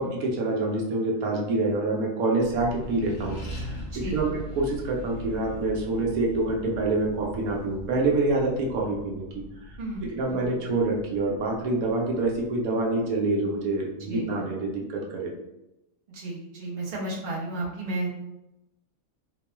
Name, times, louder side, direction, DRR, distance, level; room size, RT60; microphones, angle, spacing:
voice 1, 0.0-9.4 10.1-15.3, right 2 dB, 80° right, -1 dB, 1.1 m, -26 dB
Accelerating revving vroom, 2.3-13.3, right 1 dB, 65° left, 1.5 m, -41 dB
voice 2, 3.9-4.3 9.8-10.8 14.0-14.4 16.1-18.1, right 2 dB, 40° right, -4 dB, 0.9 m, -33 dB
4.1 x 2.2 x 2.9 m, 0.91 s
omnidirectional pair, 1.5 m